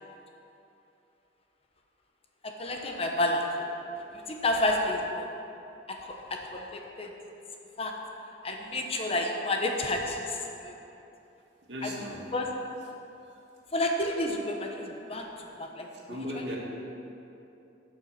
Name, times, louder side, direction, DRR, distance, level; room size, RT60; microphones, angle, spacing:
voice 1, 2.4-3.7 4.1-5.2 5.9-7.1 7.8-7.9 8.4-10.7 11.8-11.9 12.3-12.5 13.7-16.6, left 1 dB, 35° left, 2 dB, 1.1 m, -31 dB
voice 2, 11.7-12.3 15.9-16.6, left 1 dB, 85° right, -2 dB, 2.0 m, -37 dB
12.5 x 7.2 x 5.8 m, 2.8 s
head